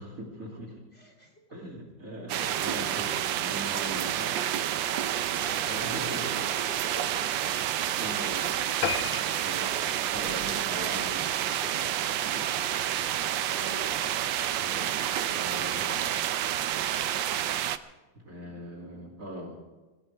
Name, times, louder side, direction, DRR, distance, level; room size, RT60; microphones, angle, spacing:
voice 1, 0.0-0.8 1.5-4.4 5.5-6.5 7.9-8.6 9.0-9.8 10.1-12.5 14.6-16.1 18.1-19.6, equal, 45° right, -1 dB, 3.2 m, -41 dB
voice 2, 1.0-1.3 4.8-5.6 5.9-6.5 6.9-7.1 9.6-10.1 10.7-11.6 13.3-14.0, right 1 dB, 30° left, 0 dB, 3.8 m, -45 dB
sound 1, 2.3-17.8, right 11 dB, 80° right, 1.4 m, -29 dB
sound 2, 8.8-11.6 12.0-12.2 12.7-12.8 13.1-13.2 13.4-13.5, left 8 dB, 85° left, 1.8 m, -36 dB
23.5 x 17.5 x 3.5 m, 1.2 s
omnidirectional pair, 2.1 m